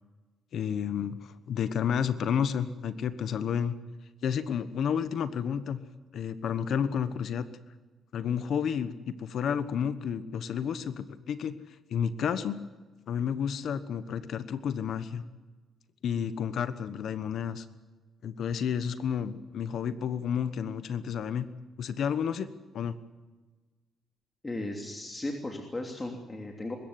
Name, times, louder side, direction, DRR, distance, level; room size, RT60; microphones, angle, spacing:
voice 1, 0.5-3.8 4.2-5.8 6.1-7.5 8.1-11.6 11.9-12.6 13.1-15.2 16.0-17.7 18.2-21.4 21.8-22.9, left 8 dB, 65° left, 13 dB, 1.2 m, -31 dB
voice 2, 24.4-26.8, left 2 dB, 20° left, 2 dB, 3.0 m, -36 dB
23.5 x 13.5 x 9.7 m, 1.3 s
cardioid pair, 90°, 0 cm